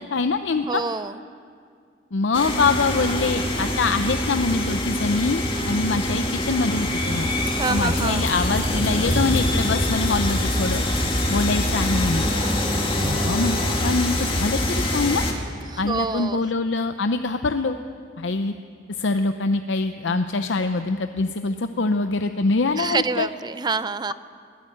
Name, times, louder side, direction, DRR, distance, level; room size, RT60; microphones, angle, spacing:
voice 1, 0.1-0.8 2.1-7.3 7.7-10.8 11.3-12.3 13.0-13.6 13.8-15.2 15.8-17.8 18.2-18.5 19.0-23.3, left 3 dB, 85° left, 8 dB, 0.7 m, -24 dB
voice 2, 0.7-1.2 7.5-8.3 15.7-16.5 22.8-24.1, right 4 dB, 25° right, 15 dB, 0.5 m, -27 dB
sound 1, 2.3-15.3, left 1 dB, 30° left, 2.4 m, -24 dB
22.0 x 15.0 x 8.6 m, 2.2 s
head